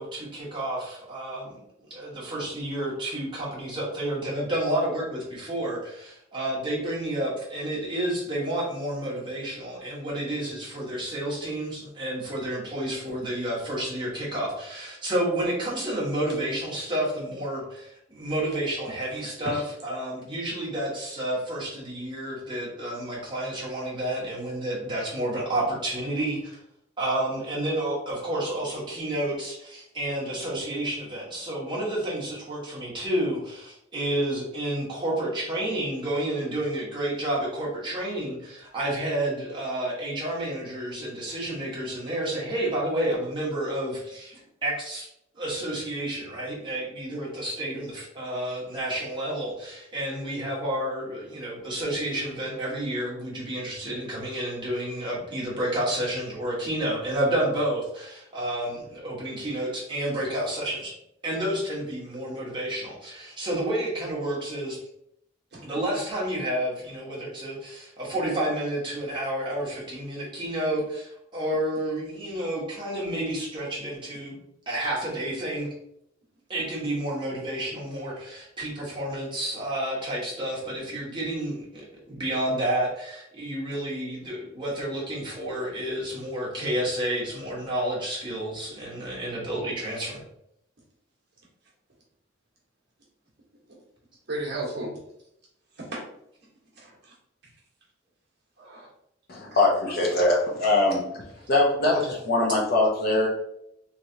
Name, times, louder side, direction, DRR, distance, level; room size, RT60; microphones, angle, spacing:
voice 1, 0.0-1.6 1.9-26.6 27.0-45.1 45.4-60.9 61.2-64.8 65.6-74.4 74.7-75.7 76.5-90.2, right 1 dB, 25° right, -6 dB, 1.3 m, -30 dB
voice 2, 94.3-94.9 95.8-96.0 96.7-97.1 98.6-98.9 99.5-99.6, right 2 dB, 60° right, -4 dB, 1.2 m, -34 dB
voice 3, 99.3-101.0 101.5-103.3, left 2 dB, 55° left, -2 dB, 0.9 m, -22 dB
3.2 x 3.2 x 2.7 m, 0.77 s
head